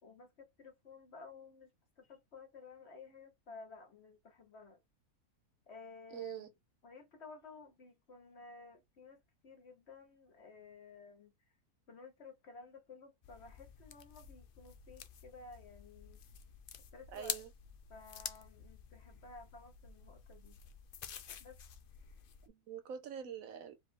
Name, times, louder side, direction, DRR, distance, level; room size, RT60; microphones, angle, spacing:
voice 1, 0.0-1.7 2.0-4.8 5.7-6.5 6.8-11.3 11.9-16.2 16.9-17.4 17.9-20.6 21.4-21.6, left 4 dB, 45° left, 1.3 m, -54 dB
voice 2, 6.1-6.5 17.1-17.5 22.4-23.8, right 9 dB, 70° right, 0.9 m, -45 dB
sound 1, 13.2-22.5, left 8 dB, 85° left, 0.4 m, -49 dB
5.1 x 2.6 x 3.3 m
omnidirectional pair, 1.6 m